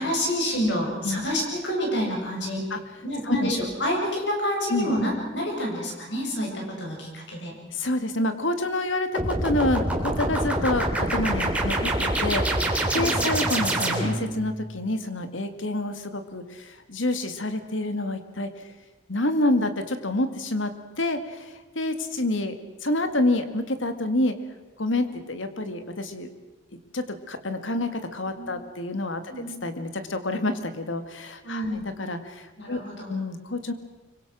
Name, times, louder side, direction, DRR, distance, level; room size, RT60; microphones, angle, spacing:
voice 1, 0.0-2.6 3.0-7.5 13.0-13.3 28.4-28.5 29.3-29.5 31.4-31.8 32.6-33.1, equal, 60° left, 0 dB, 7.8 m, -28 dB
voice 2, 7.7-18.5 19.1-20.7 21.0-22.5 22.8-24.3 24.8-26.3 26.7-29.3 29.6-32.8 33.1-33.7, left 2 dB, 80° left, 9 dB, 2.1 m, -28 dB
sound 1, 9.2-14.4, right 1 dB, 5° right, 3.2 m, -25 dB
25.5 x 24.0 x 6.3 m, 1.2 s
head